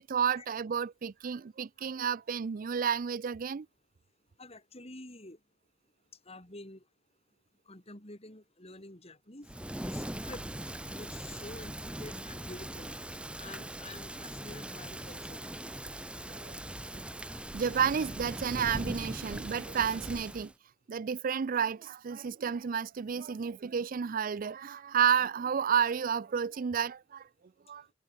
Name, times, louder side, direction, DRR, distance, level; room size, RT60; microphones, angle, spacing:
voice 1, 0.0-3.7 16.3-16.6 16.9-17.0 17.5-20.5 20.9-27.2 27.7-27.8, right 7 dB, 50° right, 0.4 m, -31 dB
voice 2, 4.4-5.4 6.3-6.8 7.7-9.5 9.8-10.4 10.9-12.9 13.4-15.4, left 2 dB, 35° left, 7.7 m, -48 dB
Thunder / Rain, 9.4-20.5, right 1 dB, 5° right, 1.3 m, -40 dB
head